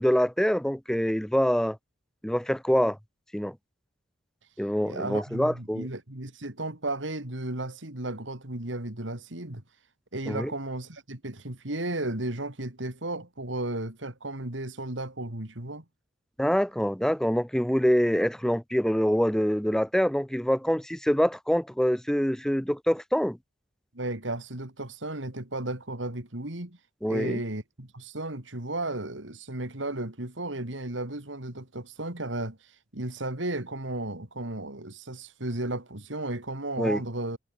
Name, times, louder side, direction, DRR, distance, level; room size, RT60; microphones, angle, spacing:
voice 1, 0.0-1.8 2.2-3.0 3.3-3.5 4.6-5.9 10.3-10.5 16.4-23.4 27.0-27.4 36.8-37.0, equal, 5° left, 0.7 m, -25 dB
voice 2, 4.8-9.6 10.1-15.8 23.9-26.8 27.1-37.4, right 2 dB, 80° right, 3.5 m, -34 dB
head